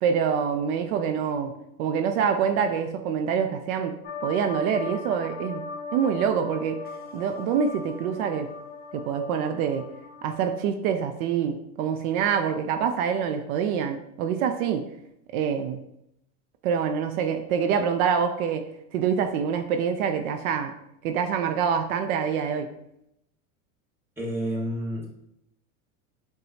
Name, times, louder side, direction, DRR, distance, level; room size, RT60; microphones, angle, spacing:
voice 1, 0.0-1.5 1.8-5.6 5.9-6.8 7.1-8.5 8.9-9.8 10.2-14.9 15.3-15.8 16.6-18.7 18.9-20.7 21.0-22.7, right 7 dB, 70° right, 6 dB, 0.5 m, -26 dB
sound 1, 4.0-10.4, left 4 dB, 25° left, 0.5 m, -39 dB
voice 2, 24.2-25.2, equal, 5° right, -5 dB, 1.3 m, -30 dB
5.4 x 2.3 x 2.7 m, 0.80 s
supercardioid pair, 105°, 44 cm